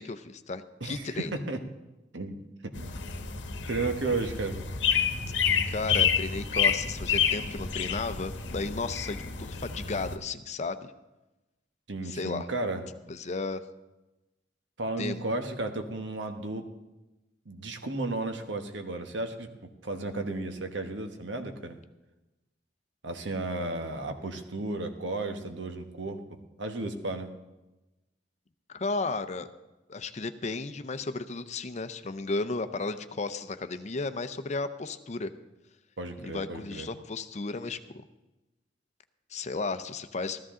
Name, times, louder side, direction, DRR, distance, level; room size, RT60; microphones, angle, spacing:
voice 1, 0.0-1.3 5.7-10.9 12.0-12.5 13.1-13.6 15.0-15.2 28.7-29.5 29.9-35.3 36.2-37.8 39.3-40.4, left 3 dB, 40° left, 11 dB, 0.6 m, -34 dB
voice 2, 0.8-1.6 2.1-2.9 3.7-4.6 11.9-12.8 14.8-16.6 17.4-19.5 19.8-21.8 23.0-26.2 26.6-27.3 36.0-36.9, right 2 dB, 85° right, 6 dB, 1.2 m, -33 dB
sound 1, 2.7-10.2, left 7 dB, 85° left, 1.0 m, -29 dB
14.0 x 13.5 x 3.8 m, 1.0 s
head